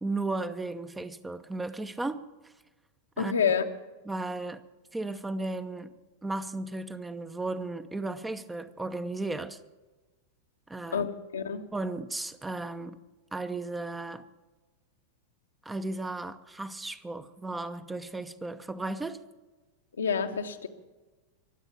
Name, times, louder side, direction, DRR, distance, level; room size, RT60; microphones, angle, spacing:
voice 1, 0.0-2.5 3.2-3.3 4.0-4.6 4.9-5.9 6.2-9.6 10.7-11.1 11.7-13.0 13.3-14.3 15.6-19.2, right 2 dB, 10° right, 11 dB, 0.7 m, -35 dB
voice 2, 3.2-3.6 10.9-11.6 20.0-20.7, left 6 dB, 70° left, 6 dB, 1.1 m, -28 dB
23.5 x 8.1 x 6.9 m, 1.2 s
figure-of-eight pair, 90°, 0 cm